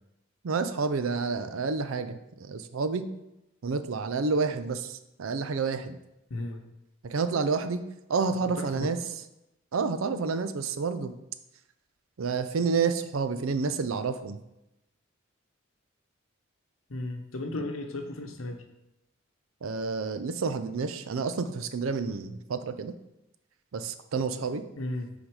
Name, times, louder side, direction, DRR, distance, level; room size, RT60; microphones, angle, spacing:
voice 1, 0.4-3.0 3.6-6.0 7.0-7.8 8.1-9.0 9.7-11.1 12.2-14.4 19.6-22.9 23.7-24.6, right 4 dB, 85° right, 10 dB, 0.5 m, -29 dB
voice 2, 6.3-6.7 8.6-8.9 16.9-18.6 24.8-25.1, left 2 dB, 90° left, 5 dB, 0.8 m, -35 dB
6.0 x 4.0 x 4.8 m, 0.90 s
head